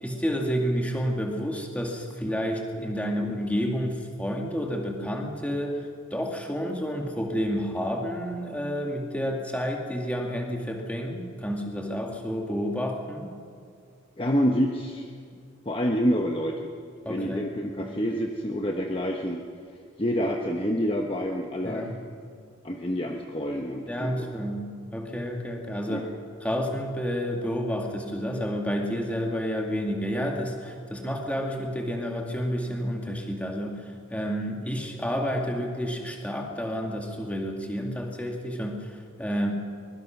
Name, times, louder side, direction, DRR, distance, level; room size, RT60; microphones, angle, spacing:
voice 1, 0.0-5.9 6.1-13.3 17.0-18.0 21.6-22.0 23.9-26.1 26.4-39.5, equal, 5° left, 1 dB, 2.1 m, -30 dB
voice 2, 14.2-15.1 15.7-16.7 17.1-19.4 20.0-21.9 22.6-24.3 25.9-26.0, equal, 25° left, 2 dB, 1.1 m, -27 dB
23.5 x 21.5 x 6.0 m, 2.2 s
head